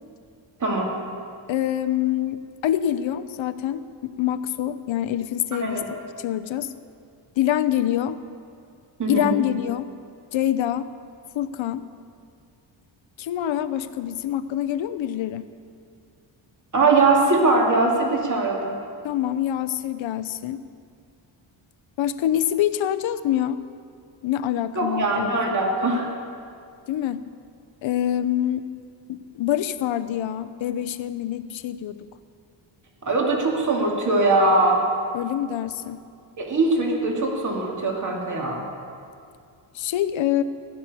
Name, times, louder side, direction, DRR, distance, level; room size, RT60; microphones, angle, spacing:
voice 1, 1.5-5.8 6.2-6.7 7.4-8.2 9.1-9.9 10.3-10.9 11.3-11.9 13.2-15.5 19.0-20.6 22.0-23.6 24.2-25.6 26.9-27.2 27.8-28.6 29.1-32.0 35.1-36.0 39.7-40.4, left 11 dB, 70° left, 12 dB, 0.8 m, -25 dB
voice 2, 9.0-9.4 16.7-18.7 24.8-26.1 33.0-34.8 36.4-38.6, right 3 dB, 40° right, 0 dB, 2.5 m, -21 dB
16.0 x 6.4 x 9.7 m, 2.4 s
cardioid pair, 90°, 48 cm